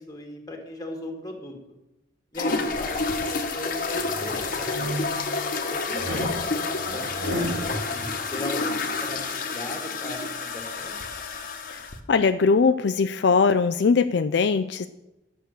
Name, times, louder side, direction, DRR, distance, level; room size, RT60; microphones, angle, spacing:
voice 1, 0.0-1.5 2.3-5.0 5.7-11.0, left 1 dB, 20° left, 3 dB, 2.0 m, -38 dB
sound 1, 2.3-12.0, left 3 dB, 50° left, 1.3 m, -29 dB
sound 2, 2.7-3.3 3.8-5.4 6.0-7.7, equal, 75° right, 2.7 m, -33 dB
voice 2, 12.1-14.9, left 5 dB, 65° left, 10 dB, 0.4 m, -21 dB
11.5 x 7.7 x 6.6 m, 0.98 s
head